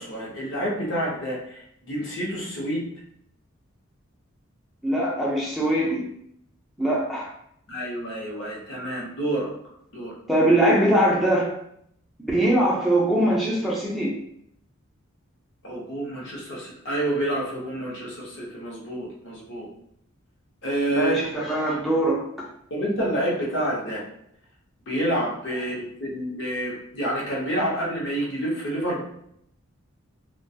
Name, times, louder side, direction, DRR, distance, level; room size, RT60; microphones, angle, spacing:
voice 1, 0.0-2.8 7.7-9.5 9.9-10.1 15.6-19.7 20.6-21.1 22.7-24.0 24.9-29.0, right 1 dB, 60° left, -4 dB, 0.8 m, -28 dB
voice 2, 4.8-6.1 6.8-7.3 10.3-11.5 12.2-14.1 20.9-22.5, right 1 dB, ahead, -5 dB, 0.4 m, -22 dB
2.3 x 2.2 x 2.6 m, 0.71 s
head